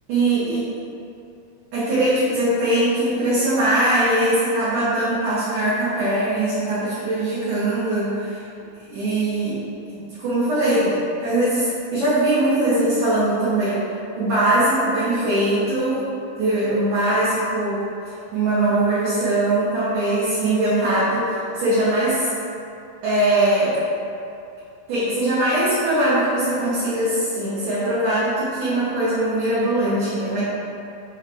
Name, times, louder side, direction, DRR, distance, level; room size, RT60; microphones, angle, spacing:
voice 1, 0.1-0.6 1.7-8.4 8.9-9.6 9.9-13.8 14.2-16.1 16.4-17.9 18.3-22.3 23.0-23.8 24.9-30.4, right 1 dB, 70° right, -12 dB, 2.1 m, -21 dB
6.5 x 2.4 x 3.3 m, 2.7 s
omnidirectional pair, 4.3 m